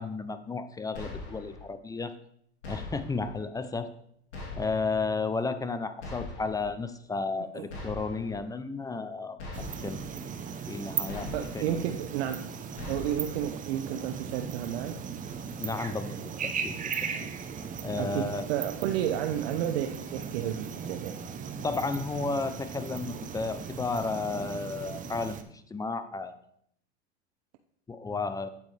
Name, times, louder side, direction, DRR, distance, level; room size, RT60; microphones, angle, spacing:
voice 1, 0.0-2.2 2.7-3.9 4.6-10.1 10.7-11.6 15.6-16.8 17.2-17.3 17.8-18.4 21.6-26.3 27.9-28.5, left 4 dB, 10° left, 0.5 m, -33 dB
sound 1, 0.9-1.6 2.6-3.3 4.3-5.0 6.0-6.7 7.7-8.4 9.4-10.1 11.1-11.8 12.8-13.5, left 2 dB, 80° left, 3.0 m, -41 dB
sound 2, 9.5-25.4, right 6 dB, 25° right, 0.8 m, -37 dB
voice 2, 11.3-12.5 12.9-15.0 18.0-21.2, right 11 dB, 60° right, 0.7 m, -32 dB
8.5 x 8.1 x 3.3 m
hypercardioid pair, 95°, 33 cm